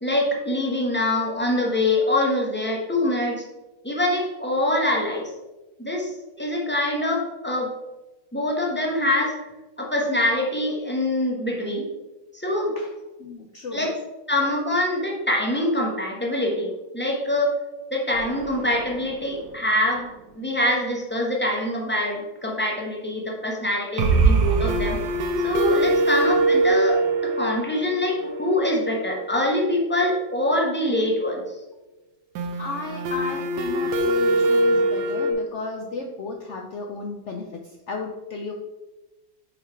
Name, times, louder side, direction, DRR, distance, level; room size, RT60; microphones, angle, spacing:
voice 1, 0.0-3.4 3.8-5.3 5.8-7.7 8.3-9.4 9.8-11.9 12.3-12.7 13.7-13.9 14.3-17.6 17.9-20.1 20.3-25.0 25.4-31.4, left 1 dB, 10° left, -1 dB, 0.6 m, -24 dB
voice 2, 13.2-13.9 32.6-37.6 37.9-38.5, left 3 dB, 85° left, 1 dB, 0.6 m, -34 dB
sound 1, 18.1-19.3 19.6-19.7 20.0-20.1 24.0-29.6 32.4-35.3, right 2 dB, 70° right, 1.3 m, -23 dB
5.3 x 5.0 x 4.5 m, 1.1 s
omnidirectional pair, 2.0 m